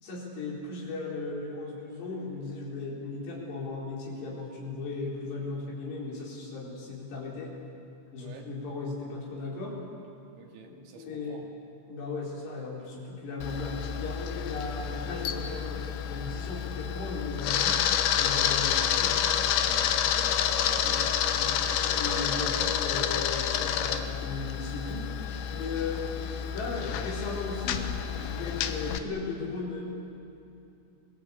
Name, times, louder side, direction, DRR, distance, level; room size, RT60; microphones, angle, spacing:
voice 1, 0.0-7.5 8.1-9.8 10.7-11.4 11.9-17.8 18.2-19.2 20.8-25.1 25.5-29.8, left 3 dB, 55° left, -3 dB, 6.4 m, -36 dB
voice 2, 8.2-8.5 10.4-11.5 19.7-21.1, right 5 dB, 70° right, 2 dB, 4.2 m, -48 dB
Camera, 13.4-29.0, left 9 dB, 75° left, 3.1 m, -29 dB
30.0 x 21.0 x 8.5 m, 2.6 s
omnidirectional pair, 5.8 m